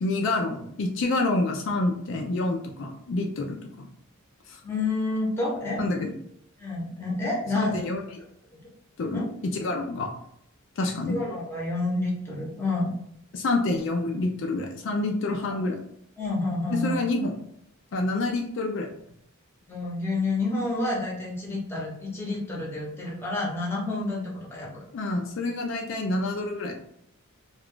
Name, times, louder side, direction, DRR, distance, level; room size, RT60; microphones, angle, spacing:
voice 1, 0.0-3.9 4.5-4.6 5.8-6.1 7.5-8.0 9.0-10.1 10.8-11.2 13.3-15.8 16.7-17.3 17.9-18.9 24.9-26.7, left 2 dB, 60° left, 2 dB, 0.4 m, -27 dB
voice 2, 4.6-5.8 6.6-7.8 9.1-9.2 11.1-12.9 15.5-15.6 16.2-17.0 19.7-24.8, left 2 dB, 10° left, -5 dB, 0.8 m, -29 dB
2.3 x 2.3 x 3.5 m, 0.72 s
head